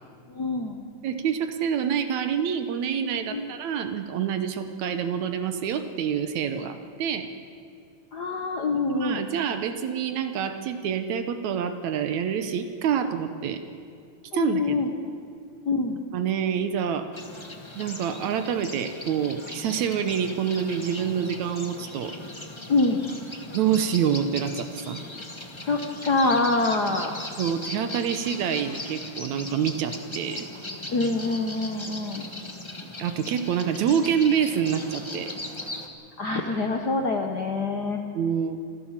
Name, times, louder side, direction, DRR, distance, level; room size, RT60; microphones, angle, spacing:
voice 1, 0.3-0.8 3.3-3.5 8.1-9.2 14.3-14.9 15.6-16.0 22.7-23.0 25.7-27.1 30.9-32.3 36.2-38.0, left 3 dB, 70° left, 3 dB, 0.9 m, -25 dB
voice 2, 1.0-7.3 8.9-13.6 14.3-14.8 16.1-17.1 17.8-22.1 23.5-25.0 27.4-30.5 33.0-35.3 38.1-38.6, right 8 dB, 70° right, 9 dB, 2.1 m, -27 dB
sound 1, 17.1-35.9, left 2 dB, 30° left, 0.4 m, -39 dB
25.0 x 15.5 x 7.4 m, 2.4 s
omnidirectional pair, 3.7 m